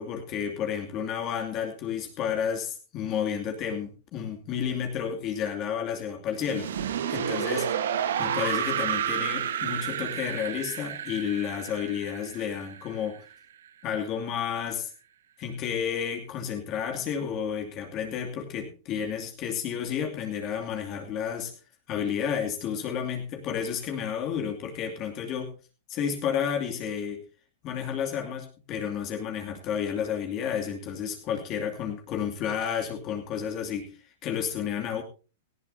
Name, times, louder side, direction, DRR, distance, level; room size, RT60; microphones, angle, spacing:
voice 1, 0.0-6.7 7.1-7.7 8.2-13.2 13.8-14.9 15.4-21.5 21.9-25.5 25.9-27.3 27.6-34.0 34.2-35.0, left 8 dB, 40° left, 3 dB, 2.6 m, -31 dB
sound 1, 6.4-13.3, right 9 dB, 75° right, 1.3 m, -30 dB
18.0 x 14.5 x 2.8 m, 0.33 s
hypercardioid pair, 120°, 0 cm